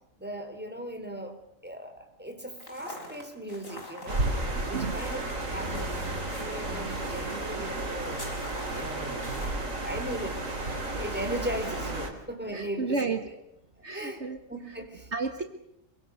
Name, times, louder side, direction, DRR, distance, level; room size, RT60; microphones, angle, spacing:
voice 1, 0.2-1.4 1.6-4.3 4.6-5.2 5.5-8.3 8.7-9.4 9.8-10.4 10.7-13.2 13.9-15.1, right 1 dB, 5° right, 5 dB, 4.1 m, -38 dB
sound 1, 2.6-9.5, left 1 dB, 85° left, 6.2 m, -45 dB
sound 2, 4.1-12.1, right 2 dB, 85° right, 4.5 m, -33 dB
voice 2, 4.7-5.1 12.5-13.3 13.8-14.4 15.1-15.4, right 4 dB, 60° right, 7 dB, 1.9 m, -31 dB
27.0 x 24.0 x 6.5 m, 0.80 s
omnidirectional pair, 1.3 m